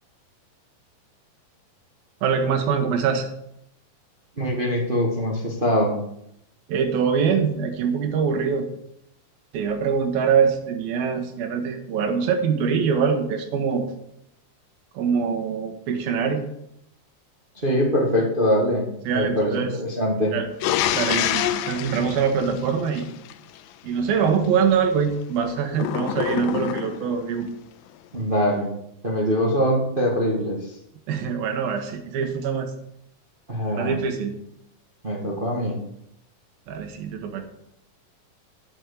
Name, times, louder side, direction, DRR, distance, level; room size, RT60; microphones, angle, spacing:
voice 1, 2.2-3.3 6.7-8.7 9.5-13.9 14.9-16.4 19.1-19.7 20.3-20.5 21.0-23.1 23.8-27.5 31.1-32.7 33.8-34.4 36.7-37.5, right 6 dB, 90° right, 5 dB, 3.0 m, -23 dB
voice 2, 4.4-6.0 17.5-20.3 28.1-28.7 29.0-30.7 33.5-33.9 35.0-35.8, equal, 35° right, -2 dB, 0.8 m, -23 dB
sound 1, 20.6-23.3 25.7-27.2, left 12 dB, 85° left, 2.4 m, -26 dB
8.4 x 6.2 x 8.2 m, 0.77 s
omnidirectional pair, 4.1 m